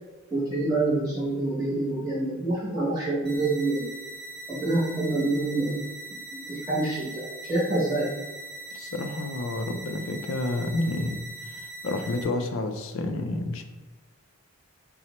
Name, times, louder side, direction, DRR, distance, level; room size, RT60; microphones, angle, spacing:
voice 1, 0.3-3.8 4.5-5.8 6.3-8.0, right 2 dB, 15° right, -7 dB, 0.8 m, -27 dB
sound 1, 3.2-12.2, right 2 dB, 20° left, 0.9 m, -41 dB
voice 2, 8.7-11.2 11.8-13.6, left 2 dB, 60° left, 6 dB, 0.3 m, -29 dB
4.0 x 2.0 x 2.9 m, 1.2 s
head